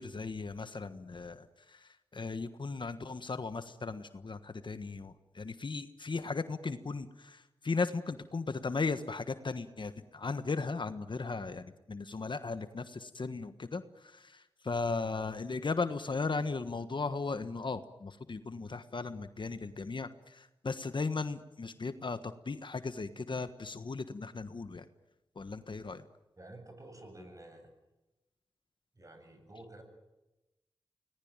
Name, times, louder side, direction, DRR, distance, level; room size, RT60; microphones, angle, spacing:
voice 1, 0.0-1.5 1.7-1.8 2.1-24.9 25.3-26.0, left 4 dB, 55° left, 11 dB, 1.4 m, -37 dB
voice 2, 26.4-27.7 28.9-29.8, right 1 dB, 35° right, 6 dB, 7.6 m, -51 dB
25.0 x 19.0 x 8.9 m, 1.0 s
cardioid pair, 50°, 10 cm